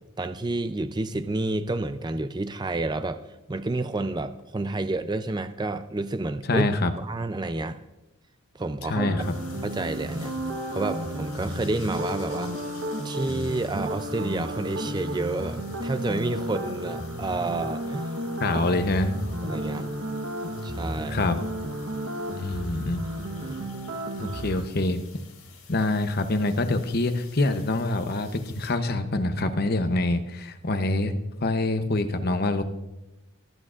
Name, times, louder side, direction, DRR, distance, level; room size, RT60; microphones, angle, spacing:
voice 1, 0.2-3.2 3.5-6.7 7.0-7.8 8.5-9.1 9.6-10.4 10.7-12.6 13.0-18.1 19.4-19.9 20.6-21.2 23.4-23.6 24.2-24.4, right 2 dB, 20° right, 10 dB, 0.4 m, -29 dB
voice 2, 6.5-6.9 8.9-9.2 18.4-19.1 21.1-21.3 22.4-23.0 24.2-25.0 25.7-31.1 31.4-32.6, left 2 dB, 45° left, 8 dB, 0.8 m, -25 dB
sound 1, 9.0-24.7, equal, 70° right, 1.2 m, -33 dB
sound 2, 9.2-28.7, left 6 dB, 80° left, 5.1 m, -51 dB
24.0 x 8.6 x 2.5 m, 0.97 s
head